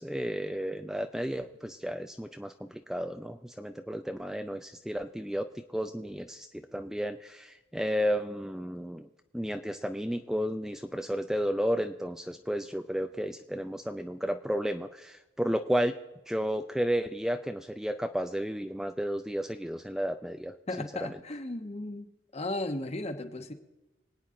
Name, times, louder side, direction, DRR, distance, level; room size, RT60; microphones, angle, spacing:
voice 1, 0.0-9.1 9.3-15.9 16.3-20.9, equal, 5° right, 7 dB, 0.4 m, -32 dB
voice 2, 20.7-22.1 22.3-23.5, left 2 dB, 35° left, 8 dB, 1.2 m, -35 dB
25.5 x 9.2 x 3.8 m, 1.1 s
head